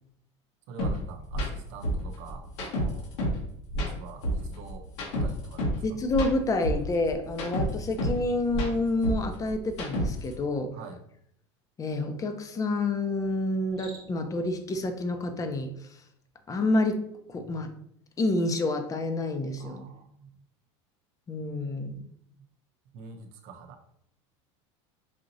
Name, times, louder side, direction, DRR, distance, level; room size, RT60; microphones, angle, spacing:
voice 1, 0.7-3.1 3.8-4.9 5.2-6.0 10.7-11.0 19.6-20.3 22.3-22.4 22.9-23.8, right 5 dB, 60° right, 7 dB, 0.7 m, -46 dB
sound 1, 0.8-0.9 1.3-1.5 1.8-3.4 3.7-5.8 6.1-8.2 8.5-10.3, equal, 75° left, 1.4 m, -29 dB
voice 2, 5.8-10.7 11.8-16.0 16.5-17.0 17.3-17.7 18.2-19.8 21.3-22.0, left 2 dB, 25° left, 7 dB, 0.6 m, -28 dB
Cricket, 13.6-14.4, right 4 dB, 35° right, 1.3 m, -50 dB
4.9 x 2.8 x 2.6 m, 0.70 s
supercardioid pair, 110°, 15 cm